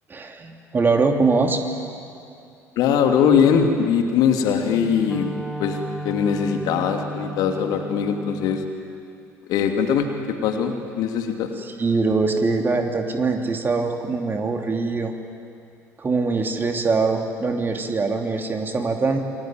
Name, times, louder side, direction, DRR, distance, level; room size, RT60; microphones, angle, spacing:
voice 1, 0.1-1.6 11.6-15.1 16.0-19.2, right 4 dB, 25° right, 4 dB, 3.1 m, -22 dB
voice 2, 2.8-5.3 5.6-5.8 6.0-8.6 9.5-11.5, left 7 dB, 55° left, 4 dB, 2.7 m, -21 dB
Wind instrument woodwind instrument, 4.6-8.7, right 1 dB, 5° left, 2.5 m, -34 dB
28.0 x 22.5 x 9.2 m, 2.5 s
figure-of-eight pair, 55°, 8 cm